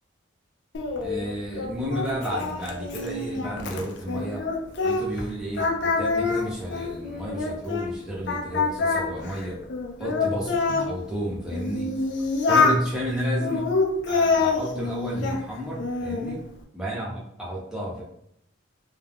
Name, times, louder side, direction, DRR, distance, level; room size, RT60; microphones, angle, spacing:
Singing, 0.7-5.3 5.5-7.9 8.3-10.9 11.5-12.8 13.4-15.4 15.8-16.4, left 4 dB, 65° left, 0.4 m, -26 dB
voice 1, 1.0-4.4 4.8-9.6 10.0-11.9 12.5-13.6 14.1-16.4 16.7-18.0, equal, 5° right, -6 dB, 0.7 m, -31 dB
2.4 x 2.3 x 3.4 m, 0.72 s
head